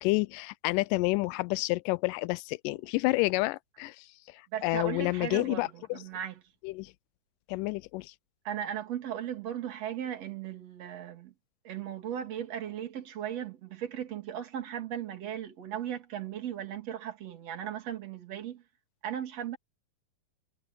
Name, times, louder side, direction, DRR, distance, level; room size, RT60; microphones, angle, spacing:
voice 1, 0.0-4.1 4.6-6.0 6.6-6.9 7.5-8.1, left 22 dB, 85° left, 2.2 m, -29 dB
voice 2, 4.5-6.4 8.5-11.3 11.7-18.6 19.0-19.6, right 10 dB, 50° right, 3.6 m, -37 dB
omnidirectional pair, 3.8 m